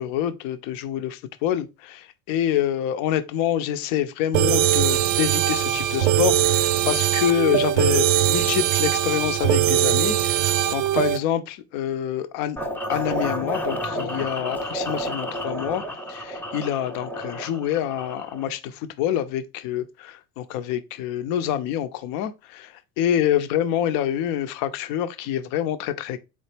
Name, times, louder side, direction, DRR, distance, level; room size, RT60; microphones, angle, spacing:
voice 1, 0.0-12.6 12.9-15.8 16.1-26.2, left 10 dB, 50° left, 0.7 m, -26 dB
sound 1, 4.3-11.2, right 12 dB, 65° right, 0.6 m, -21 dB
sound 2, 12.6-18.5, equal, 5° left, 0.8 m, -31 dB
4.0 x 3.0 x 3.3 m
hypercardioid pair, 75°, 44 cm